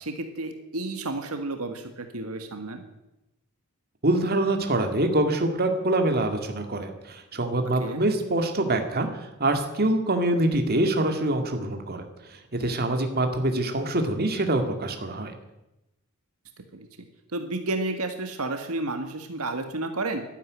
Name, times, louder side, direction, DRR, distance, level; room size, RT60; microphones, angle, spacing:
voice 1, 0.0-2.8 7.7-8.0 16.7-16.9 17.3-20.2, right 2 dB, 80° right, 6 dB, 1.7 m, -31 dB
voice 2, 4.0-12.1 12.3-15.3, right 1 dB, 45° right, 5 dB, 2.1 m, -25 dB
12.0 x 11.5 x 9.6 m, 0.94 s
head